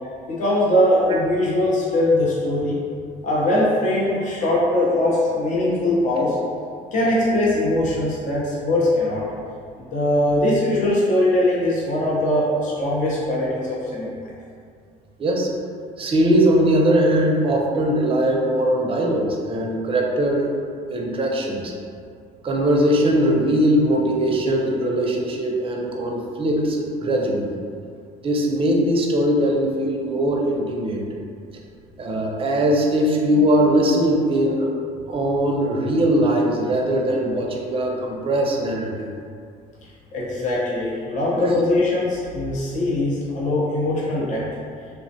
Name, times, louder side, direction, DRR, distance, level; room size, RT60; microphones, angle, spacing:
voice 1, 0.3-2.8 3.2-6.4 6.9-9.2 9.9-14.1 40.1-44.4, left 1 dB, 50° left, -6 dB, 0.7 m, -21 dB
voice 2, 16.0-20.5 20.9-21.7 22.4-27.6 28.2-31.0 32.0-34.7 35.1-39.1 41.3-41.5, right 1 dB, 35° right, 0 dB, 0.5 m, -20 dB
3.2 x 2.1 x 2.7 m, 2.2 s
cardioid pair, 110°, 17 cm